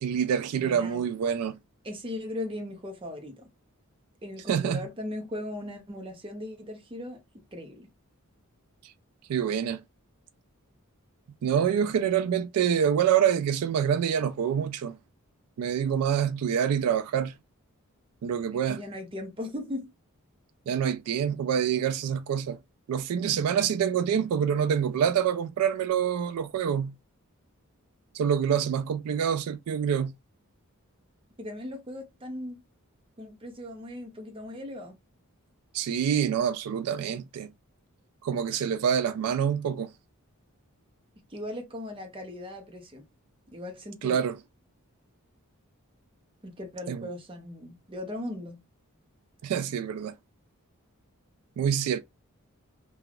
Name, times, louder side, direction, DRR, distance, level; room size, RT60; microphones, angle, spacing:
voice 1, 0.0-1.6 4.5-4.8 9.3-9.8 11.4-15.0 15.6-17.3 18.2-18.8 20.7-22.6 22.9-26.9 28.1-30.1 35.7-37.5 38.2-39.9 44.0-44.3 46.9-47.1 49.4-50.1 51.6-52.0, right 8 dB, 85° right, 0.3 m, -26 dB
voice 2, 0.6-1.0 1.8-3.5 4.2-7.2 7.5-7.9 18.7-19.9 31.4-32.6 33.2-35.0 41.3-43.0 43.5-44.2 46.4-48.6, left 1 dB, 25° right, 0.6 m, -38 dB
3.3 x 2.3 x 2.3 m
head